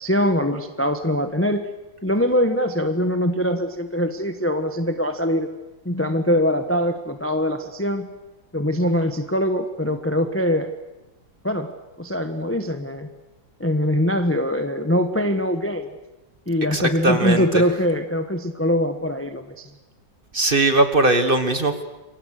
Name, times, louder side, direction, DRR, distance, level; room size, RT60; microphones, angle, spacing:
voice 1, 0.0-1.7 2.0-5.5 5.8-8.1 8.5-10.7 11.4-11.7 12.0-13.1 13.6-15.9 16.5-19.7, equal, 10° left, 7 dB, 1.0 m, -22 dB
voice 2, 16.7-17.6 20.3-21.8, right 2 dB, 30° right, 8 dB, 1.6 m, -19 dB
28.0 x 24.0 x 6.6 m, 1.0 s
omnidirectional pair, 2.1 m